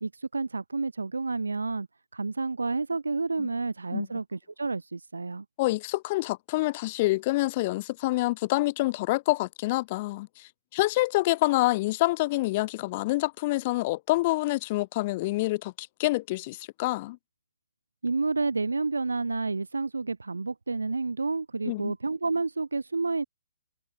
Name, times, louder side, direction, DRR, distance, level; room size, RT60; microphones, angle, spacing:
voice 1, 0.0-1.9 2.1-5.4 18.0-23.2, right 3 dB, 85° right, 1.0 m, -30 dB
voice 2, 5.6-17.2 21.7-21.9, left 20 dB, 35° left, 2.4 m, -27 dB
figure-of-eight pair, 130°, 0 cm